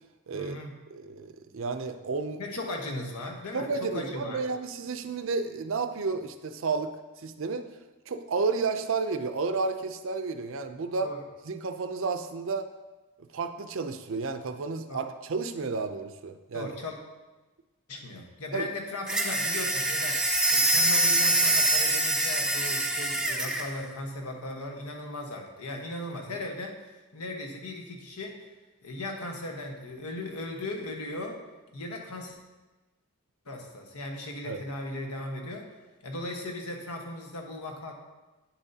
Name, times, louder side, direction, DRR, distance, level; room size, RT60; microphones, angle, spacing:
voice 1, 0.3-0.7 2.4-4.4 11.0-11.2 14.9-15.0 16.5-17.0 17.9-28.4 28.8-31.4 31.7-32.4 33.4-35.7 36.0-37.9, left 2 dB, 85° left, 2 dB, 1.3 m, -37 dB
voice 2, 0.9-2.4 3.5-7.7 8.1-11.1 11.5-12.7 13.3-16.7 18.5-18.7 34.4-34.6, right 4 dB, 60° right, 9 dB, 0.5 m, -31 dB
sound 1, 19.1-23.7, right 1 dB, 5° right, 0.5 m, -25 dB
9.4 x 7.1 x 2.8 m, 1.2 s
head